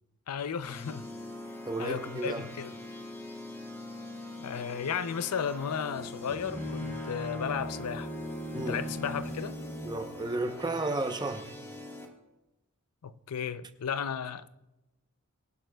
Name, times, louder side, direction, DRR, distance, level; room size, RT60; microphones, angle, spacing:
voice 1, 0.3-1.1 1.8-2.7 4.4-8.1 8.5-9.6 13.0-14.6, left 7 dB, 85° left, 0.5 m, -34 dB
sound 1, 0.6-12.1, left 1 dB, 10° left, 1.6 m, -43 dB
voice 2, 1.7-2.4 8.5-8.8 9.8-11.5, right 2 dB, 20° right, 0.7 m, -33 dB
Bowed string instrument, 6.0-10.1, equal, 40° left, 5.3 m, -39 dB
24.0 x 10.5 x 2.3 m
head